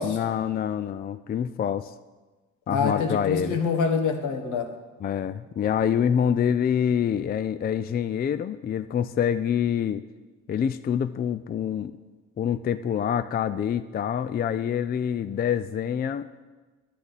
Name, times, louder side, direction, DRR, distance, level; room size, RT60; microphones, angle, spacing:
voice 1, 0.0-1.9 2.7-3.6 5.0-10.0 10.5-12.0 12.4-16.4, left 8 dB, 30° left, 13 dB, 0.4 m, -26 dB
voice 2, 2.7-4.7, left 5 dB, 80° left, 4 dB, 1.2 m, -26 dB
11.5 x 8.4 x 4.0 m, 1.3 s
cardioid pair, 90°, 30 cm